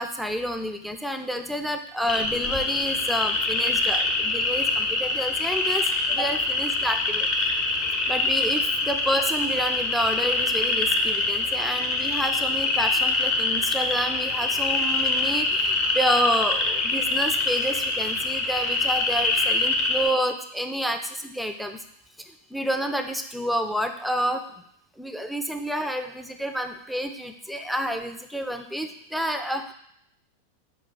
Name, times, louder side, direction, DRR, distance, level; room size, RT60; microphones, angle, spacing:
voice 1, 0.0-7.5 8.1-21.8 22.3-24.4 25.0-29.7, equal, ahead, 5 dB, 0.3 m, -29 dB
sound 1, 2.1-20.1, left 3 dB, 40° left, 0.6 m, -25 dB
4.8 x 2.2 x 3.9 m, 0.72 s
figure-of-eight pair, 90°, 0 cm